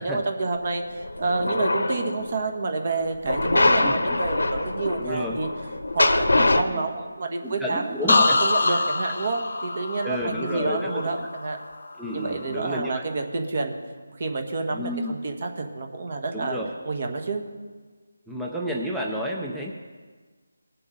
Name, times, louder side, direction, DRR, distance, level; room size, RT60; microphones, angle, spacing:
voice 1, 0.0-5.5 5.9-11.6 12.1-13.8 14.2-16.6 16.8-17.4, right 3 dB, 45° right, 5 dB, 1.6 m, -29 dB
sound 1, 1.0-2.4 3.2-6.6, left 2 dB, 80° left, 1.1 m, -23 dB
voice 2, 3.6-4.2 5.0-5.4 6.7-6.9 7.4-8.4 8.7-8.8 10.0-11.0 11.9-13.0 14.7-15.2 16.3-16.7 18.3-19.7, equal, ahead, -3 dB, 0.6 m, -31 dB
sound 2, 8.1-11.9 12.3-12.7, left 3 dB, 60° left, 0.9 m, -25 dB
20.0 x 7.7 x 3.9 m, 1.5 s
figure-of-eight pair, 165°, 0 cm